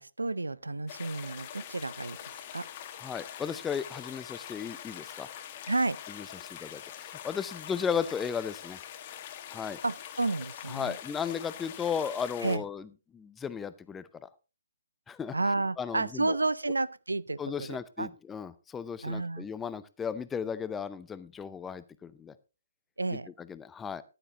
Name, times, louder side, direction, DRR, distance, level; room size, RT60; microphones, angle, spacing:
voice 1, 0.0-2.7 5.7-6.0 9.8-11.0 12.4-12.6 15.3-18.1 19.0-19.5 23.0-23.3, right 2 dB, 80° right, 0.5 m, -31 dB
sound 1, 0.9-12.6, left 10 dB, 35° left, 1.6 m, -44 dB
voice 2, 3.0-5.3 6.1-8.8 9.5-9.8 10.7-12.9 13.1-14.3 15.1-15.4 15.8-16.4 17.4-22.3 23.1-24.0, left 7 dB, 10° left, 0.6 m, -35 dB
14.5 x 11.0 x 2.9 m
figure-of-eight pair, 135°, 0 cm